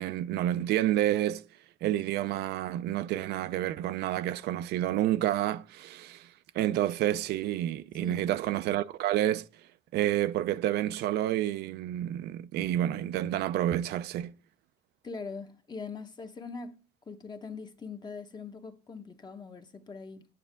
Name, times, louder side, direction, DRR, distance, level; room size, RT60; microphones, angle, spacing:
voice 1, 0.0-1.4 1.8-6.3 6.5-9.5 9.9-14.3, right 13 dB, 75° right, 0.5 m, -29 dB
voice 2, 15.0-16.8 17.1-20.3, left 4 dB, 25° left, 1.1 m, -42 dB
9.3 x 7.2 x 3.5 m
cardioid pair, 110°, 17 cm